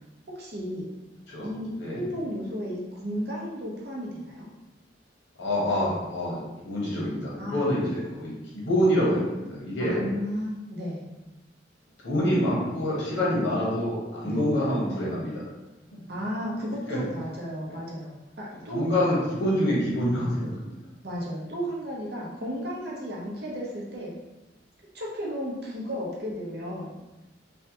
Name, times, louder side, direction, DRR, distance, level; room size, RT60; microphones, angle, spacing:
voice 1, 0.4-0.8 1.4-4.5 7.3-7.7 9.8-11.0 14.2-14.4 16.1-18.8 21.0-24.1 24.9-26.9, equal, 55° right, -4 dB, 0.7 m, -33 dB
voice 2, 5.4-10.1 12.0-15.4 15.9-16.0 16.9-17.0 17.7-17.8 18.7-20.7, equal, 70° left, -6 dB, 1.2 m, -26 dB
3.2 x 2.3 x 2.9 m, 1.1 s
head